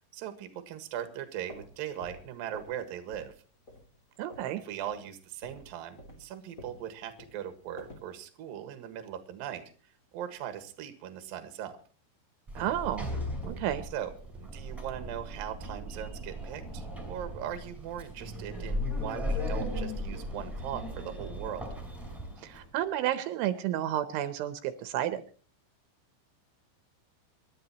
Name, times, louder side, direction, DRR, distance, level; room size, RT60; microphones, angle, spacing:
voice 1, 0.1-3.3 4.6-9.6 10.1-11.8 13.9-14.1 14.4-21.7, right 10 dB, 60° right, 9 dB, 2.8 m, -39 dB
sound 1, 1.3-2.8 3.1-3.4 3.7-4.6 4.8-5.1 5.4-8.1, left 1 dB, 25° left, 2.2 m, -50 dB
voice 2, 4.2-4.6 12.6-13.1 13.4-13.9 22.4-25.2, right 12 dB, 80° right, 11 dB, 3.2 m, -31 dB
Sliding door, 12.5-22.6, left 1 dB, ahead, 4.0 m, -37 dB
27.5 x 11.5 x 2.9 m, 0.38 s
omnidirectional pair, 5.6 m